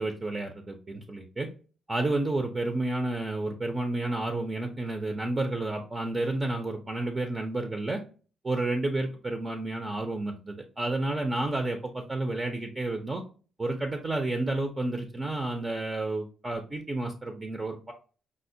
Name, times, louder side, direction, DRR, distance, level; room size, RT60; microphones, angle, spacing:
voice 1, 0.0-1.5 1.9-8.0 8.4-13.2 13.6-17.9, right 2 dB, 20° right, 4 dB, 0.5 m, -31 dB
4.9 x 2.0 x 2.6 m, 0.38 s
cardioid pair, 125°, 0 cm